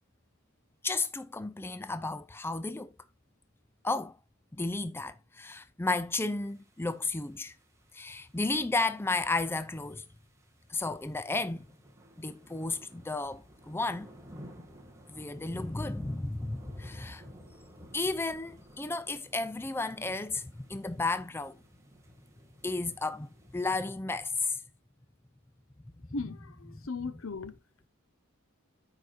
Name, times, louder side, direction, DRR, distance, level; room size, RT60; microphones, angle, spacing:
voice 1, 0.8-2.9 3.8-4.2 4.5-7.6 7.9-10.0 10.7-11.7 12.2-14.1 15.1-17.2 17.9-21.6 22.6-24.6, left 3 dB, 10° left, 0.4 m, -33 dB
sound 1, 6.5-23.7, equal, 15° right, 1.9 m, -55 dB
voice 2, 26.1-27.6, left 3 dB, 75° left, 0.9 m, -37 dB
13.5 x 4.8 x 2.4 m
head